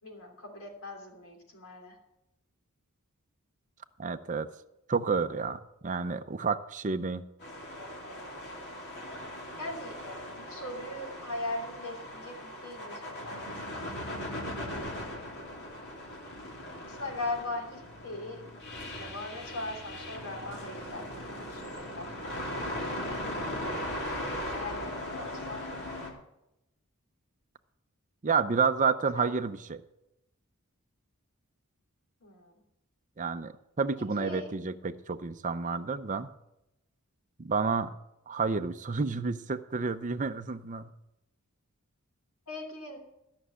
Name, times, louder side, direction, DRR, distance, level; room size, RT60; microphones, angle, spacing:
voice 1, 0.0-2.0 9.6-10.0 10.4-13.9 14.6-15.0 16.8-18.4 19.0-22.2 24.5-25.6 29.2-29.3 32.2-32.5 34.2-34.5 42.5-43.0, left 2 dB, 75° left, 1 dB, 3.1 m, -40 dB
voice 2, 4.0-4.5 4.9-7.2 28.2-29.8 33.2-36.3 37.4-37.9 38.3-40.9, right 4 dB, 35° right, 10 dB, 0.6 m, -30 dB
sound 1, 7.4-26.1, left 1 dB, 50° left, 2.7 m, -39 dB
13.5 x 6.3 x 8.1 m, 0.87 s
head